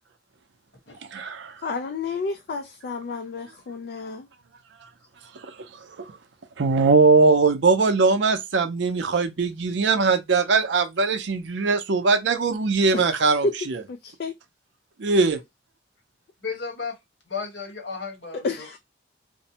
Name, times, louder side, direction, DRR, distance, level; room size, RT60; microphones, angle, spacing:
voice 1, 1.1-1.5 6.6-13.8 15.0-15.4, right 4 dB, 75° right, 0.5 m, -20 dB
voice 2, 1.6-4.3 12.9-13.5 13.9-14.3 18.3-18.8, left 3 dB, 55° left, 0.3 m, -30 dB
voice 3, 16.4-16.9 17.3-18.4, left 5 dB, 70° left, 1.2 m, -33 dB
2.5 x 2.0 x 2.7 m
head